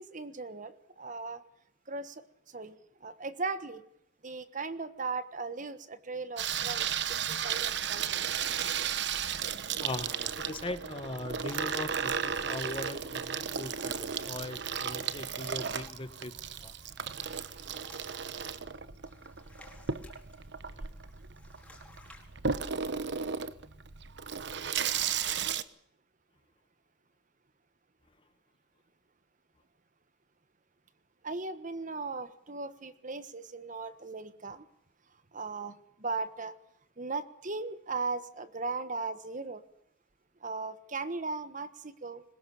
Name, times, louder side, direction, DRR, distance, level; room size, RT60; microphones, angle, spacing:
voice 1, 0.0-1.4 1.9-3.8 4.2-8.1 31.2-34.7 35.3-36.5 37.0-39.6 40.4-42.2, right 3 dB, 45° right, 1.3 m, -38 dB
Water tap faucet / Sink (filling or washing), 6.4-25.6, right 7 dB, 65° right, 1.1 m, -34 dB
voice 2, 9.8-16.3 16.6-16.7 20.7-20.8, left 2 dB, 30° left, 1.4 m, -40 dB
sound 1, 10.0-22.3, left 2 dB, 5° left, 4.4 m, -59 dB
22.5 x 20.5 x 7.1 m
head